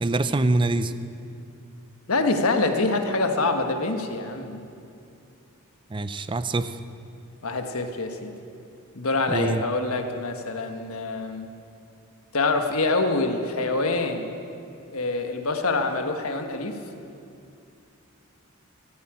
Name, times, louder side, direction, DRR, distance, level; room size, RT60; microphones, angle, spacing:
voice 1, 0.0-0.9 5.9-6.8 9.3-9.6, right 2 dB, 20° right, 13 dB, 0.5 m, -24 dB
voice 2, 2.1-4.6 7.4-8.3 8.9-11.5 12.3-14.3 14.9-16.8, left 3 dB, 80° left, 5 dB, 1.3 m, -25 dB
14.0 x 9.7 x 8.9 m, 2.6 s
head